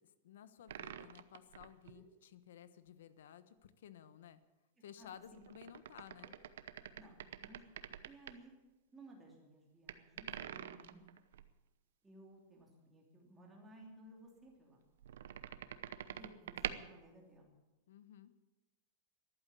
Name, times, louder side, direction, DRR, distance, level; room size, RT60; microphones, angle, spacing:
voice 1, 0.0-4.4 4.8-6.4 17.9-18.3, left 9 dB, 80° left, 13 dB, 1.2 m, -56 dB
sound 1, 0.7-2.0 5.2-8.4 9.9-11.5 15.0-16.9, right 10 dB, 85° right, 0.9 m, -46 dB
voice 2, 5.0-5.4 6.2-6.3 6.9-7.2 7.4-8.5 8.9-11.0 12.0-14.8 16.1-17.6, right 1 dB, 10° right, -1 dB, 2.9 m, -58 dB
14.0 x 11.5 x 8.4 m, 1.1 s
supercardioid pair, 175°, 0 cm